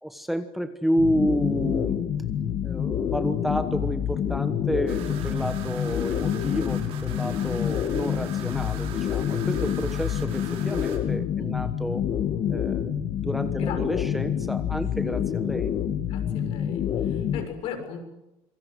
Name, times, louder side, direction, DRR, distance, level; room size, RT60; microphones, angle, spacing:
voice 1, 0.0-2.0 2.6-12.0 12.5-12.9 13.2-15.7, equal, ahead, 8 dB, 1.2 m, -30 dB
sound 1, 1.0-17.5, left 9 dB, 40° left, 1.7 m, -27 dB
sound 2, 4.9-11.0, right 8 dB, 65° right, 6.4 m, -43 dB
voice 2, 11.4-11.7 13.5-13.8 14.0-14.2 15.0-15.2 16.1-18.0, left 7 dB, 70° left, 6 dB, 6.6 m, -38 dB
27.0 x 24.0 x 8.1 m, 0.91 s
cardioid pair, 180°, 10 cm